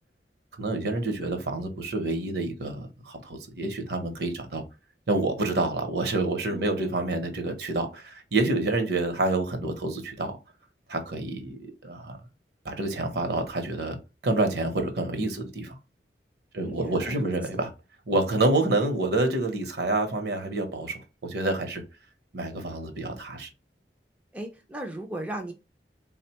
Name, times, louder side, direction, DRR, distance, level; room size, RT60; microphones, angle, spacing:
voice 1, 0.6-4.6 5.1-10.4 10.9-12.2 12.6-15.8 16.5-17.7 18.1-21.8 22.3-23.5, right 2 dB, 70° right, 0.7 m, -28 dB
voice 2, 6.5-7.0 16.6-17.3 24.3-25.5, right 1 dB, 5° right, 0.4 m, -37 dB
3.7 x 2.1 x 2.8 m
head